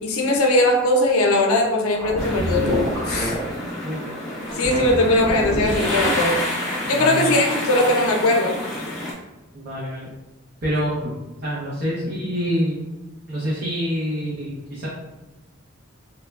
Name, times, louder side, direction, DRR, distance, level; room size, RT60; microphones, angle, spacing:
voice 1, 0.0-3.3 4.5-6.4 6.8-8.6, left 1 dB, 75° left, 2 dB, 0.5 m, -20 dB
sound 1, 1.9-3.5 4.4-6.2, equal, 85° right, 1.0 m, -27 dB
sound 2, 2.2-9.1, left 1 dB, ahead, 0.7 m, -28 dB
voice 2, 6.8-7.3 9.5-10.1 10.6-11.1 11.4-12.8 13.3-14.9, equal, 45° right, -9 dB, 0.6 m, -26 dB
3.0 x 2.1 x 2.3 m, 1.1 s
head